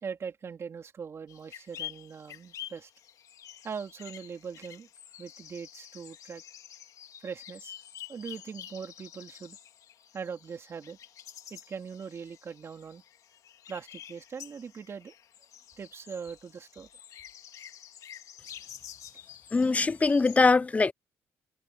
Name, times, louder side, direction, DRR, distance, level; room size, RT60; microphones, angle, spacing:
voice 1, 0.0-2.9 3.6-4.9 5.2-6.4 7.2-7.7 8.1-9.6 10.1-11.0 11.5-13.0 13.7-15.1 15.8-16.9, right 6 dB, 50° right, 3.5 m, -41 dB
sound 1, 1.3-20.4, left 11 dB, 70° left, 2.2 m, -48 dB
voice 2, 19.5-20.9, left 4 dB, 25° left, 0.5 m, -22 dB
cardioid pair, 80°, 6 cm